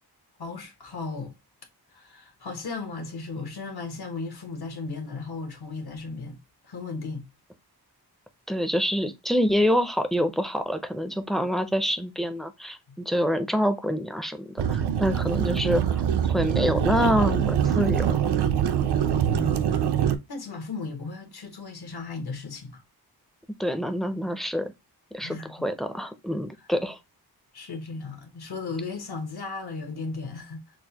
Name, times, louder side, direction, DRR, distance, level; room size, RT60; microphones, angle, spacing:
voice 1, 0.4-1.3 1.9-6.4 6.6-7.3 12.9-13.0 19.3-19.8 20.3-22.8 25.2-25.7 27.5-30.6, left 4 dB, 75° left, 1.1 m, -36 dB
voice 2, 8.5-16.0 16.3-18.3 23.6-24.7 25.1-27.0, equal, ahead, 0.4 m, -26 dB
sound 1, 14.6-20.2, right 9 dB, 85° right, 0.6 m, -24 dB
6.2 x 2.1 x 2.8 m
wide cardioid pair, 140°, 39 cm